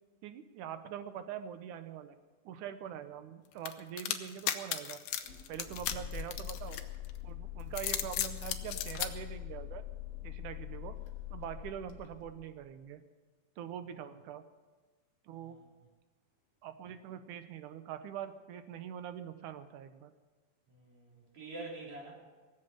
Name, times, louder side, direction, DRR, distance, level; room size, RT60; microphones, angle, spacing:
voice 1, 0.2-2.2 2.5-5.0 5.5-6.8 7.2-9.8 10.2-11.0 11.3-13.0 13.6-14.4 15.2-15.7 16.6-20.1, right 9 dB, 75° right, 10 dB, 2.1 m, -43 dB
sound 1, 3.7-7.1 7.6-9.1, left 11 dB, 70° left, 1.9 m, -35 dB
sound 2, 5.2-12.6, left 11 dB, 50° left, 1.7 m, -44 dB
voice 2, 15.3-15.6 20.7-22.1, right 2 dB, 50° right, -2 dB, 4.4 m, -46 dB
18.0 x 7.7 x 9.1 m, 1.3 s
omnidirectional pair, 4.0 m